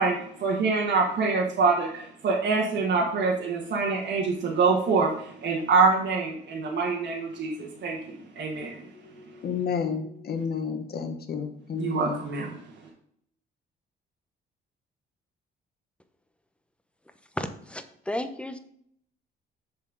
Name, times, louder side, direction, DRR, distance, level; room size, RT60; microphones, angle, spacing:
voice 1, 0.0-5.1 5.4-8.8 11.8-12.5, right 4 dB, 65° right, -3 dB, 1.4 m, -25 dB
voice 2, 9.4-12.3, left 6 dB, 50° left, 6 dB, 1.1 m, -31 dB
voice 3, 17.4-18.6, left 1 dB, 5° left, 9 dB, 0.8 m, -33 dB
7.1 x 4.4 x 5.3 m, 0.68 s
cardioid pair, 90°, 20 cm